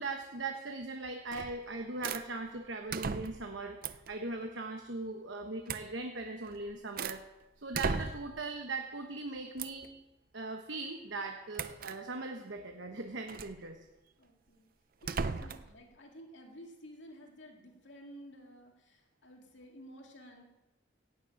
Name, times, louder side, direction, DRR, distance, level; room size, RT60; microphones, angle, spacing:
voice 1, 0.0-7.2 7.6-9.9 10.3-13.8 15.3-15.5, right 3 dB, 70° right, 4 dB, 1.1 m, -40 dB
sound 1, 1.3-1.6 2.0-2.3 2.9-3.5 3.8-4.1 5.7-5.9 6.5-7.2 7.7-8.4 9.6-9.9 11.5-12.0 13.3-13.6 15.0-15.7, right 5 dB, 50° right, 0.5 m, -36 dB
voice 2, 14.2-14.7 15.0-20.4, equal, 70° left, 2 dB, 2.4 m, -53 dB
15.5 x 6.8 x 9.0 m, 1.0 s
head